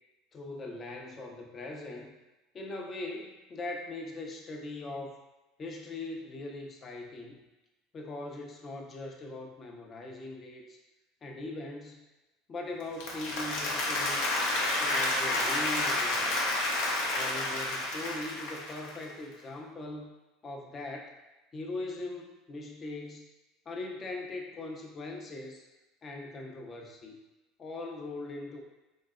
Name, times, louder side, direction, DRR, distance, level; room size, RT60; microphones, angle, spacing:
voice 1, 0.3-2.2 2.5-5.2 5.6-7.4 7.9-10.8 11.2-12.1 12.5-14.2 14.8-16.5 17.1-20.1 20.4-21.2 21.5-23.3 23.7-25.6 26.0-27.2 27.6-28.6, left 2 dB, 35° left, 1 dB, 0.5 m, -40 dB
Applause, 12.8-19.0, left 2 dB, 75° left, 0.6 m, -30 dB
3.1 x 2.7 x 2.4 m, 1.1 s
supercardioid pair, 105°, 0 cm